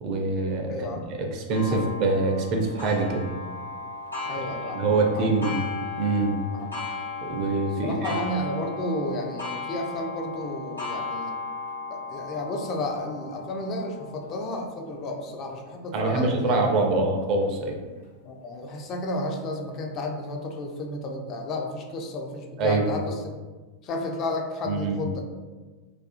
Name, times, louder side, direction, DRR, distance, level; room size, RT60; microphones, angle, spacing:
voice 1, 0.0-3.3 4.7-5.6 6.0-6.4 7.2-8.2 15.9-17.8 22.6-22.9 24.6-25.1, right 3 dB, 40° right, 2 dB, 0.4 m, -25 dB
voice 2, 0.7-1.0 1.7-1.8 4.3-5.5 6.5-6.7 7.8-11.3 11.9-16.6 18.3-23.2 23.8-25.2, left 1 dB, 35° left, 2 dB, 0.3 m, -32 dB
Clock, 1.5-16.8 17.4-17.5 18.0-18.1 19.1-19.2, left 3 dB, 85° left, 1.0 m, -37 dB
2.4 x 2.3 x 2.4 m, 1.3 s
figure-of-eight pair, 90°, 0 cm